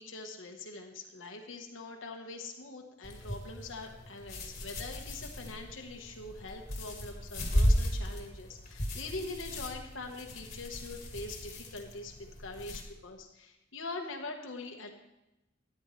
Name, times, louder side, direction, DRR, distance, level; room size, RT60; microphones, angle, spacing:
voice 1, 0.0-12.1 12.4-14.9, left 3 dB, 90° left, 2 dB, 1.3 m, -43 dB
sound 1, 3.0-12.8, equal, 35° left, 2.0 m, -35 dB
13.5 x 9.7 x 3.3 m, 0.94 s
head